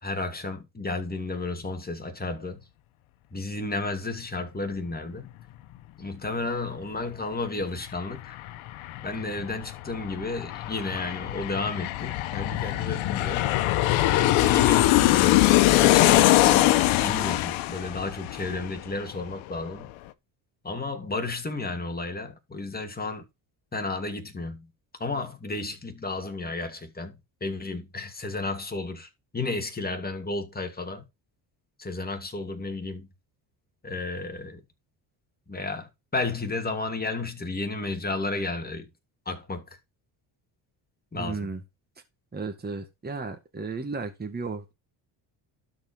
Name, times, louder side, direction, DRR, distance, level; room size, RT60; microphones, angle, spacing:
voice 1, 0.0-2.7 3.3-5.3 6.0-8.4 9.0-13.5 14.1-19.9 20.6-23.2 23.7-24.7 25.0-31.0 31.8-33.1 33.8-34.6 35.5-38.9 39.3-39.6 41.1-41.5, left 3 dB, 20° left, 2.7 m, -32 dB
Aircraft, 7.6-7.7 8.0-19.3 19.6-19.7, left 16 dB, 85° left, 1.1 m, -22 dB
voice 2, 41.1-41.6 42.3-44.7, right 4 dB, 20° right, 1.8 m, -34 dB
12.5 x 4.9 x 4.7 m
cardioid pair, 90°, 46 cm